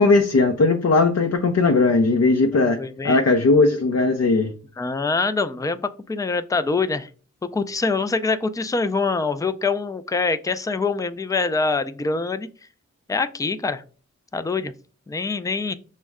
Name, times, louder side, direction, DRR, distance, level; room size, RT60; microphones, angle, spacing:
voice 1, 0.0-2.8 3.0-4.5, left 3 dB, 55° left, 4 dB, 0.6 m, -18 dB
voice 2, 2.5-3.2 4.8-7.1 7.5-12.5 13.1-13.8 14.3-14.7 15.1-15.7, left 4 dB, 10° left, 12 dB, 0.3 m, -24 dB
6.1 x 2.2 x 3.5 m, 0.38 s
wide cardioid pair, 60°, 30 cm